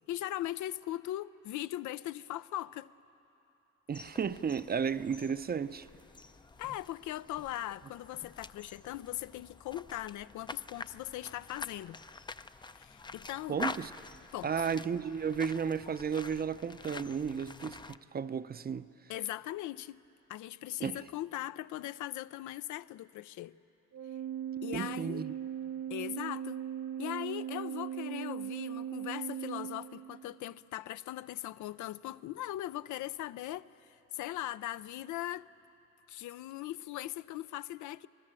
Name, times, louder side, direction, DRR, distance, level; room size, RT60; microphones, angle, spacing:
voice 1, 0.0-2.9 6.6-12.0 12.7-13.6 14.3-14.5 19.1-20.0 20.3-23.6 24.6-25.2 25.9-26.6 27.0-35.5 36.1-38.1, left 14 dB, 75° left, 0.5 m, -39 dB
sound 1, 3.9-18.0, left 3 dB, 15° left, 0.4 m, -46 dB
voice 2, 3.9-5.9 13.5-13.9 14.4-18.9 20.8-21.0 24.7-25.3, right 6 dB, 30° right, 0.5 m, -33 dB
Organ, 23.9-30.5, right 10 dB, 75° right, 0.7 m, -39 dB
26.0 x 19.0 x 7.5 m
cardioid pair, 90°, 30 cm